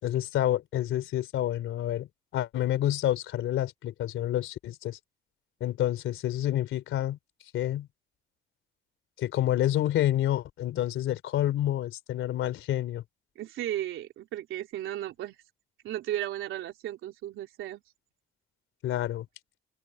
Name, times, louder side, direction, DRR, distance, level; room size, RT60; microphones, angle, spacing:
voice 1, 0.0-2.1 2.3-5.0 5.6-7.2 7.5-7.9 9.2-13.0 18.8-19.2, left 12 dB, 80° left, 3.4 m, -28 dB
voice 2, 13.3-15.4 15.8-17.8, right 13 dB, 85° right, 3.5 m, -35 dB
open air
cardioid pair, 90°, 20 cm